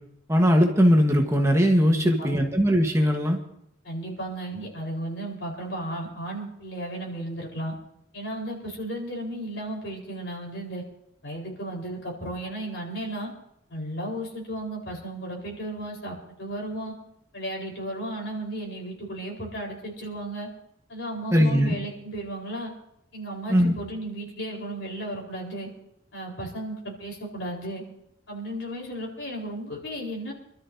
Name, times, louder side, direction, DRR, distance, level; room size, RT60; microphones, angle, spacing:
voice 1, 0.3-3.4 21.3-21.7 23.5-23.7, equal, 15° right, 2 dB, 1.2 m, -20 dB
voice 2, 1.9-2.3 3.8-7.7 8.1-10.8 11.2-13.3 13.7-16.9 17.3-20.5 20.9-22.7 23.1-25.7 26.1-27.8 28.3-30.3, right 1 dB, 70° left, -1 dB, 4.2 m, -34 dB
27.0 x 12.5 x 2.7 m, 0.78 s
head